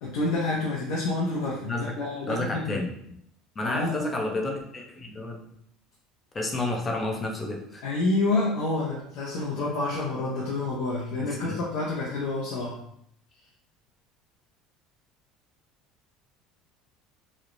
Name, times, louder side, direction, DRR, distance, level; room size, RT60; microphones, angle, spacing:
voice 1, 0.0-2.8 3.6-4.1 7.8-12.8, left 2 dB, 75° left, -6 dB, 0.6 m, -28 dB
voice 2, 2.3-2.9 3.6-5.5 6.3-7.8 11.2-11.6, left 2 dB, 25° left, 1 dB, 0.6 m, -31 dB
3.0 x 2.0 x 2.5 m, 0.71 s
supercardioid pair, 105°, 0 cm